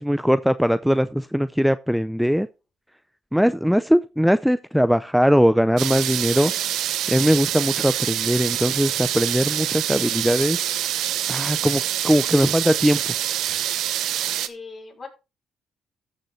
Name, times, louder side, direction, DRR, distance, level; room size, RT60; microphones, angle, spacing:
voice 1, 0.0-2.5 3.3-6.5 7.1-10.6 11.3-13.1, equal, ahead, 0.5 m, -20 dB
sound 1, 5.8-14.5, right 12 dB, 85° right, 0.9 m, -26 dB
voice 2, 14.5-15.1, left 4 dB, 45° left, 5.0 m, -39 dB
14.0 x 6.6 x 3.2 m
cardioid pair, 90°, 0 cm